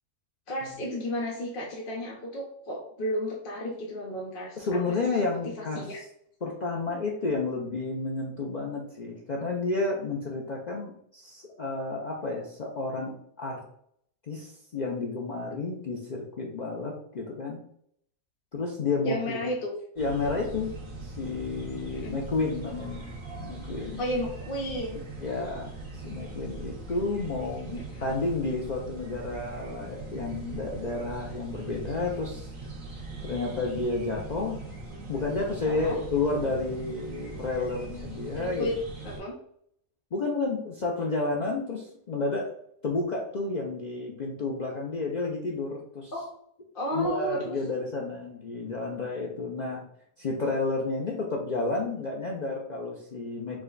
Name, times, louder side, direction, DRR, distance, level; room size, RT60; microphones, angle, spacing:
voice 1, 0.5-4.8 5.3-5.4 5.7-6.0 19.0-19.7 21.9-22.2 24.0-25.0 27.7-28.1 35.6-36.0 38.4-38.8 39.0-39.3 46.1-46.3 46.7-47.6, equal, 45° left, -3 dB, 0.8 m, -33 dB
voice 2, 4.6-6.1 6.4-13.6 14.2-17.6 18.5-19.5 20.0-20.7 21.0-24.0 25.2-32.5 33.2-34.6 35.1-38.7 40.1-42.5 42.8-46.1 46.9-49.8 50.2-53.6, left 3 dB, 80° left, -2 dB, 0.4 m, -31 dB
sound 1, 20.0-39.2, right 3 dB, 35° right, 1.4 m, -41 dB
4.9 x 2.2 x 3.8 m, 0.68 s
omnidirectional pair, 1.5 m